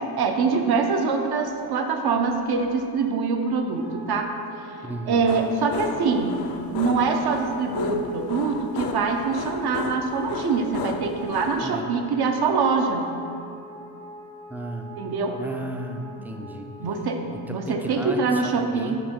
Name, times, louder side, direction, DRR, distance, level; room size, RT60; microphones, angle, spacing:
voice 1, 0.2-4.3 5.1-6.4 6.7-13.1 15.0-15.4 16.8-17.2 17.5-19.0, right 4 dB, 60° right, 4 dB, 0.7 m, -24 dB
Wind instrument woodwind instrument, 3.8-17.2, equal, 80° right, 0.9 m, -44 dB
voice 2, 4.8-5.2 11.6-11.9 14.5-14.9 15.4-16.7 17.3-19.0, right 1 dB, 5° right, 4 dB, 0.4 m, -34 dB
sound 1, 5.3-11.7, left 7 dB, 55° left, 0.5 m, -35 dB
6.7 x 2.8 x 5.3 m, 2.6 s
cardioid pair, 75°, 44 cm